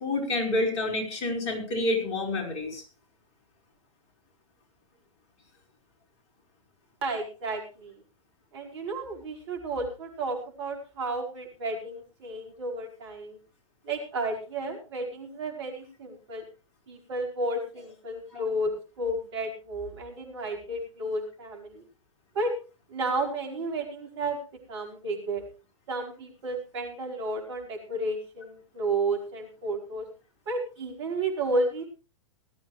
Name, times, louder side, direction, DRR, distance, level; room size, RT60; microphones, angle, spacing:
voice 1, 0.0-2.8 18.3-18.4, left 2 dB, 40° left, 3 dB, 4.9 m, -28 dB
voice 2, 7.0-7.9 8.5-13.4 13.8-16.4 16.9-21.8 22.3-22.5 22.9-24.4 24.7-25.4 25.9-30.1 30.5-31.9, right 2 dB, 55° right, 2 dB, 4.7 m, -32 dB
18.5 x 13.5 x 3.3 m, 0.33 s
figure-of-eight pair, 105°, 17 cm